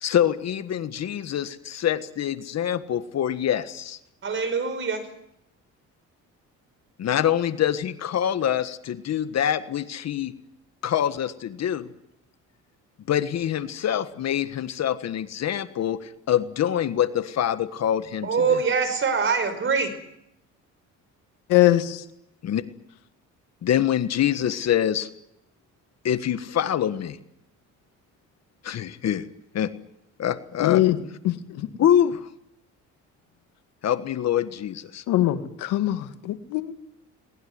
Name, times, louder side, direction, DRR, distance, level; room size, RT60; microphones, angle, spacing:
voice 1, 0.0-4.0 7.0-10.3 10.8-11.9 13.1-18.6 22.4-22.6 23.6-25.1 26.0-27.2 28.6-29.3 29.5-29.7 30.2-30.8 31.8-32.3 33.8-35.0, left 10 dB, 55° left, 1.6 m, -25 dB
voice 2, 4.2-5.1 18.2-20.0, right 5 dB, 40° right, 5.3 m, -24 dB
voice 3, 21.5-22.0 30.6-31.0 31.2-31.7 35.1-36.7, left 15 dB, 90° left, 2.0 m, -22 dB
22.0 x 20.0 x 9.6 m
cardioid pair, 110°, 31 cm